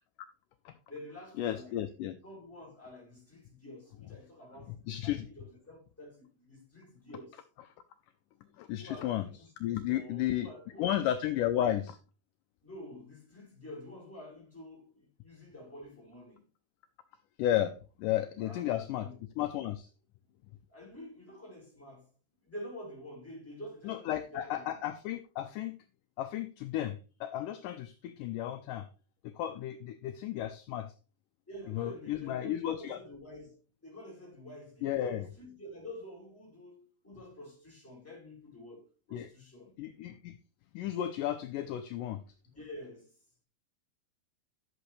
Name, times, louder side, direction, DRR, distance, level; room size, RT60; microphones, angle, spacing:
voice 1, 0.9-4.8 5.0-7.4 8.8-10.9 12.6-16.5 18.0-19.2 20.7-22.1 22.4-24.8 29.5-29.7 31.5-39.8 42.5-43.4, left 1 dB, 5° left, 4.9 m, -48 dB
voice 2, 1.4-2.2 4.9-5.3 8.6-9.3 9.6-10.5 10.8-12.0 17.4-17.7 18.0-19.1 19.4-19.9 23.8-25.8 26.2-28.9 29.2-30.9 31.7-33.0 34.8-35.2 39.1-39.3 39.8-40.4 40.7-42.2, left 12 dB, 80° left, 2.0 m, -33 dB
11.5 x 7.9 x 3.3 m
omnidirectional pair, 4.4 m